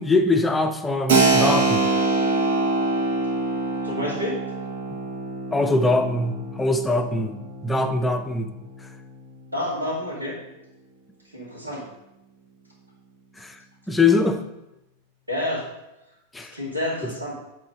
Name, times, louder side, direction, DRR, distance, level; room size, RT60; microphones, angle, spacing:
voice 1, 0.0-1.9 5.5-7.4 7.6-8.5 13.4-13.6 13.9-14.4 16.3-16.5 17.0-17.1, left 3 dB, 10° left, 6 dB, 0.6 m, -22 dB
Keyboard (musical), 1.1-9.5, right 3 dB, 60° right, 1.2 m, -25 dB
voice 2, 3.8-4.4 9.5-10.4 11.3-11.9 15.3-15.7 16.5-17.4, left 1 dB, 80° right, -3 dB, 2.3 m, -28 dB
8.8 x 3.7 x 4.9 m, 0.93 s
figure-of-eight pair, 90°, 0 cm